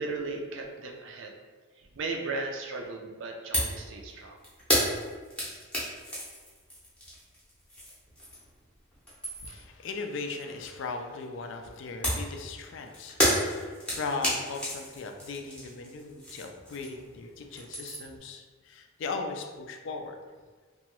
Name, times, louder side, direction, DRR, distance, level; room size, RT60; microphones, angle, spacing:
voice 1, 0.0-1.3 1.8-4.4, right 3 dB, 60° right, 2 dB, 0.4 m, -36 dB
sound 1, 3.5-3.8 4.1-8.6 8.9-9.7 12.0-17.1 17.4-18.2, equal, 5° left, 0.6 m, -31 dB
voice 2, 9.4-20.2, left 4 dB, 60° left, 4 dB, 0.3 m, -38 dB
2.8 x 2.2 x 2.9 m, 1.4 s
head